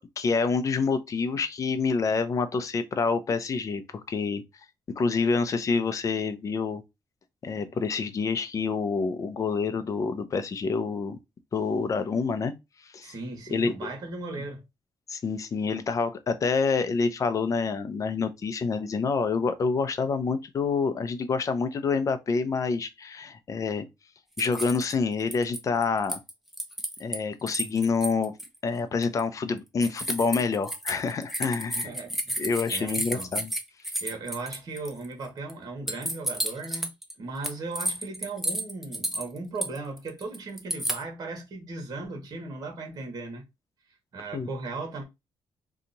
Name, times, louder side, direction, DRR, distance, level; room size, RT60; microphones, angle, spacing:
voice 1, 0.2-4.4 5.0-6.8 7.4-11.2 11.5-12.5 12.9-13.1 13.5-13.7 15.1-23.9 24.4-26.2 27.0-28.3 28.6-31.9 32.4-33.5 44.3-44.5, left 4 dB, 40° left, 0.6 m, -27 dB
voice 2, 13.0-14.6 31.8-33.4 34.0-36.9 37.2-43.4 44.1-45.0, right 3 dB, 45° right, 1.3 m, -37 dB
sound 1, 24.4-24.9 25.3-27.2 27.5-28.5 29.0-29.2 29.8-35.0 35.5-35.6 35.9-37.1 37.4-41.0, right 1 dB, 5° right, 0.6 m, -31 dB
2.8 x 2.4 x 3.9 m
cardioid pair, 120°, 8 cm